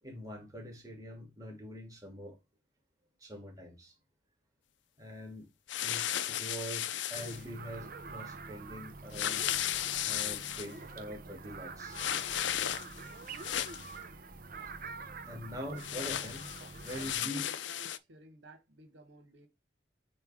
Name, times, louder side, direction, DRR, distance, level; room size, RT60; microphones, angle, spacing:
voice 1, 0.0-2.4 3.2-3.9 5.0-5.5 5.8-9.4 10.0-12.0 15.3-16.5 16.8-17.4, equal, 20° right, 2.4 m, -44 dB
sound 1, 5.7-7.4 9.1-10.7 11.9-13.0 13.3-13.9 15.8-18.0, left 11 dB, 85° left, 0.6 m, -35 dB
sound 2, 7.1-17.2, right 4 dB, 50° right, 0.9 m, -46 dB
voice 2, 16.9-19.5, right 2 dB, 80° right, 1.2 m, -55 dB
8.7 x 3.2 x 3.5 m
head